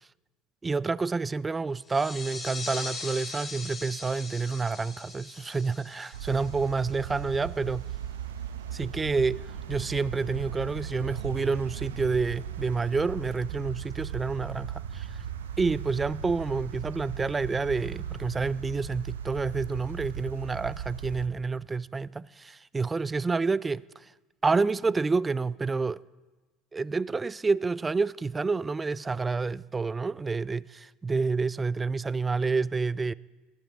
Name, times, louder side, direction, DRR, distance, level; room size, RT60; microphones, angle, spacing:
voice 1, 0.6-7.8 8.7-9.4 9.7-15.2 15.6-24.1 24.4-26.0 26.7-33.1, right 4 dB, 20° right, 0.3 m, -29 dB
sound 1, 1.8-7.2, left 3 dB, 25° left, 3.3 m, -40 dB
sound 2, 6.1-21.3, right 8 dB, 80° right, 0.8 m, -37 dB
20.0 x 13.5 x 3.6 m
hypercardioid pair, 70°, 0 cm